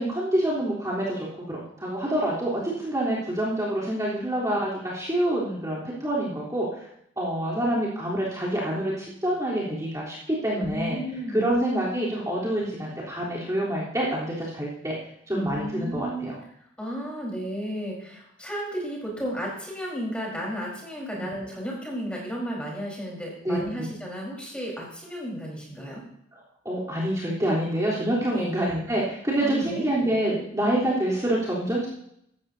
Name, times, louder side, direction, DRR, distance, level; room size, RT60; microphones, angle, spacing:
voice 1, 0.0-6.7 7.2-11.0 11.3-14.9 15.3-16.4 21.1-21.3 23.4-23.6 26.7-31.9, right 1 dB, 15° right, -7 dB, 3.6 m, -27 dB
voice 2, 10.6-11.5 15.3-16.3 16.8-26.0 28.3-28.5 29.4-29.8, equal, 5° left, -3 dB, 4.4 m, -33 dB
16.5 x 15.0 x 2.8 m, 0.73 s
head